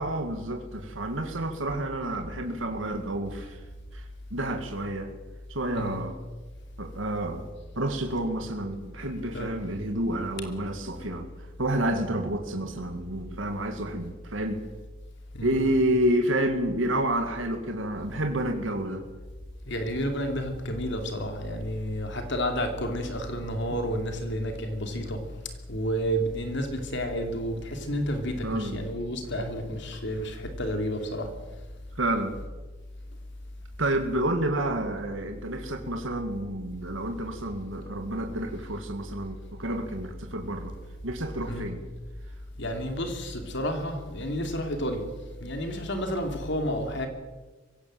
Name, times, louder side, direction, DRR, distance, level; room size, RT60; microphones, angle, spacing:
voice 1, 0.0-3.6 3.9-5.1 5.5-6.2 6.8-7.5 7.8-11.3 11.6-14.6 15.4-19.1 23.7-23.8 28.4-28.8 32.0-32.3 33.8-40.7 41.0-41.8, right 1 dB, 75° right, 2.2 m, -29 dB
voice 2, 19.6-25.2 25.7-31.3 41.5-41.7 42.6-45.1 45.4-47.1, equal, 65° left, 3.0 m, -30 dB
24.0 x 17.0 x 7.8 m
head